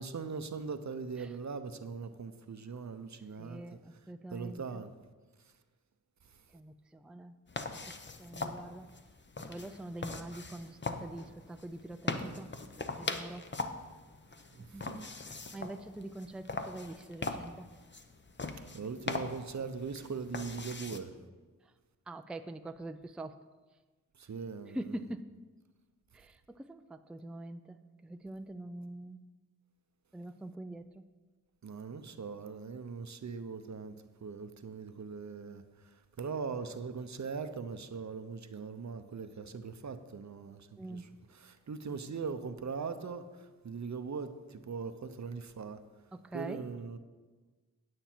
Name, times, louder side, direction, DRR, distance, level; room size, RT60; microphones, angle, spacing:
voice 1, 0.0-3.6 4.3-4.9 14.5-15.0 18.7-21.1 24.2-25.0 31.6-34.0 34.2-35.6 36.2-45.8 46.3-47.0, right 5 dB, 55° right, 0.7 m, -40 dB
voice 2, 3.4-4.8 6.5-7.4 7.7-8.9 9.5-12.5 12.9-13.5 14.7-17.7 22.1-23.4 24.7-25.3 26.1-29.3 30.1-31.0 40.8-41.1 46.1-46.6, right 1 dB, 5° right, 0.4 m, -44 dB
sound 1, 7.5-21.0, left 3 dB, 35° left, 0.8 m, -41 dB
9.1 x 8.8 x 4.5 m
cardioid pair, 55°, 34 cm